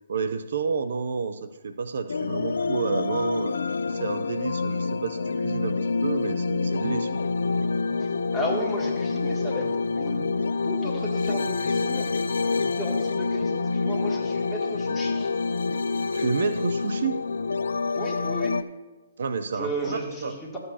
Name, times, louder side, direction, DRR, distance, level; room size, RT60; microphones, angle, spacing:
voice 1, 0.1-3.5 3.9-7.1 16.1-17.2 19.2-20.4, right 5 dB, 65° right, 9 dB, 0.6 m, -30 dB
sound 1, 2.1-18.6, left 4 dB, 75° left, 0.4 m, -27 dB
voice 2, 8.3-10.2 10.6-12.1 12.6-15.3 17.9-18.6 19.6-20.6, left 1 dB, 10° left, -4 dB, 2.2 m, -34 dB
14.0 x 7.8 x 2.8 m, 1.2 s
hypercardioid pair, 135°, 0 cm